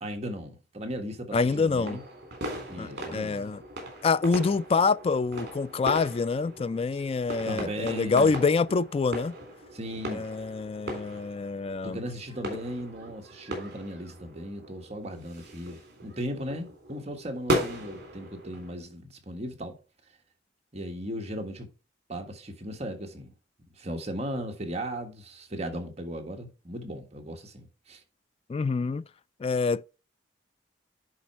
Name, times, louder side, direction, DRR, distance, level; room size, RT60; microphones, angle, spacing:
voice 1, 0.0-2.0 2.7-3.5 7.4-8.3 9.7-10.3 11.8-19.8 20.7-21.7 22.1-23.3 23.8-28.0, equal, 35° right, 1.5 m, -37 dB
voice 2, 1.3-2.0 2.8-3.6 4.0-9.4 10.1-12.0 28.5-29.0 29.4-29.8, left 4 dB, 30° left, 0.3 m, -26 dB
sound 1, 1.3-18.7, equal, 60° right, 3.4 m, -38 dB
10.5 x 4.3 x 4.3 m
head